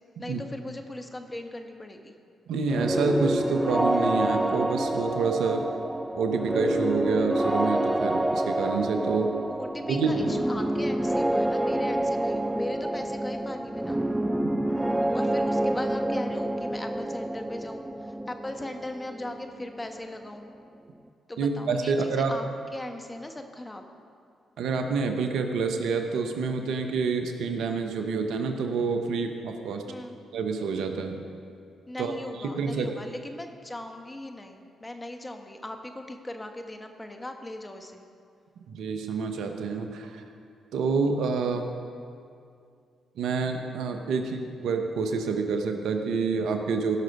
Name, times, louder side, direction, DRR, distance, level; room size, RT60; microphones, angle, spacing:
voice 1, 0.2-2.1 9.5-14.0 15.1-20.5 21.3-22.5 22.7-23.9 29.9-30.2 31.9-38.1, left 1 dB, 20° left, 5 dB, 1.2 m, -39 dB
voice 2, 2.5-5.6 6.1-9.3 9.9-10.2 14.4-14.7 21.4-22.3 24.6-29.8 30.3-31.3 32.0-32.2 32.6-32.9 38.7-40.2 40.7-41.6 43.2-47.0, right 4 dB, 75° right, 5 dB, 0.9 m, -28 dB
sound 1, 2.7-20.3, right 1 dB, 10° right, 0.4 m, -28 dB
16.5 x 6.3 x 5.4 m, 2.4 s
hypercardioid pair, 45°, 0 cm